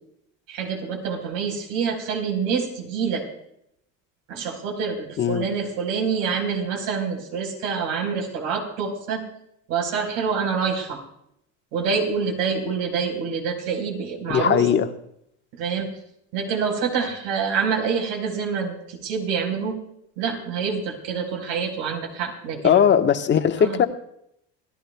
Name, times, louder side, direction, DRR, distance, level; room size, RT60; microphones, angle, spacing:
voice 1, 0.5-3.2 4.3-9.2 9.7-11.0 11.7-14.6 15.6-15.9 16.3-19.8 20.2-22.8 23.6-23.8, right 6 dB, 70° right, 2 dB, 4.5 m, -26 dB
voice 2, 5.2-5.5 14.3-14.9 22.6-23.8, left 8 dB, 30° left, 6 dB, 1.3 m, -19 dB
28.0 x 16.0 x 2.3 m, 0.74 s
supercardioid pair, 120°, 36 cm